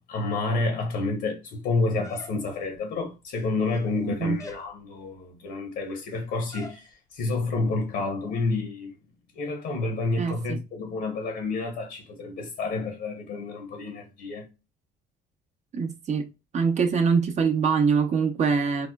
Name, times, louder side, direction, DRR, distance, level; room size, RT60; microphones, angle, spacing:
voice 1, 0.0-8.9 9.3-14.5, left 3 dB, 75° left, 1.0 m, -29 dB
sound 1, 2.0-2.8 3.6-4.0 4.4-4.7 6.5-6.8, left 2 dB, 20° left, 0.6 m, -44 dB
voice 2, 4.0-4.4 10.2-10.6 15.7-16.3 16.5-18.9, right 5 dB, 45° right, 0.6 m, -24 dB
4.7 x 2.1 x 2.3 m
cardioid pair, 110°, 17 cm